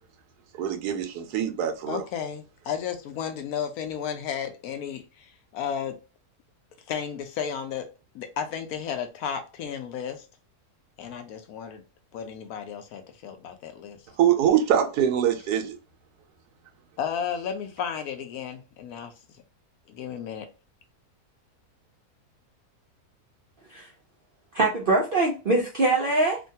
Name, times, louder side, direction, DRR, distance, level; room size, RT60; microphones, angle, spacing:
voice 1, 0.6-2.0 14.2-15.8, right 9 dB, 90° right, 1.2 m, -23 dB
voice 2, 1.9-6.0 6.9-7.9 8.1-10.2 11.0-11.8 12.1-14.0 17.0-19.1 19.9-20.5, left 8 dB, 75° left, 1.0 m, -33 dB
voice 3, 24.5-26.4, right 2 dB, 65° right, 0.5 m, -23 dB
3.1 x 2.2 x 2.6 m
omnidirectional pair, 1.7 m